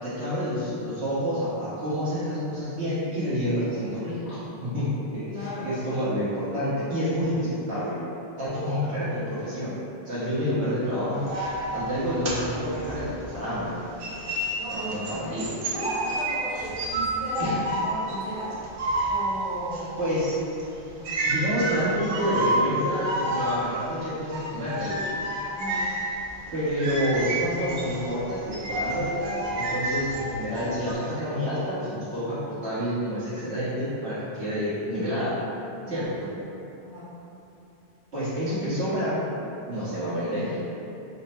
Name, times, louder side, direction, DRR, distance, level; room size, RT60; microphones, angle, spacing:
voice 1, 0.0-8.0 8.4-9.8 10.0-11.2 11.7-13.7 14.7-15.5 17.4-17.6 20.0-20.4 21.2-25.0 26.5-35.4 35.9-36.3 38.1-39.2 39.7-40.6, equal, 80° right, -11 dB, 1.6 m, -28 dB
voice 2, 5.3-5.7 14.6-15.0 15.6-18.6 19.1-20.1 20.9-21.2 25.5-25.9 27.2-27.3 35.8-36.1 36.8-37.2, right 1 dB, 70° left, -9 dB, 1.5 m, -35 dB
sound 1, 11.1-13.7 14.0-30.9, right 1 dB, 65° right, 0.8 m, -30 dB
4.1 x 2.1 x 4.4 m, 2.8 s
omnidirectional pair, 1.1 m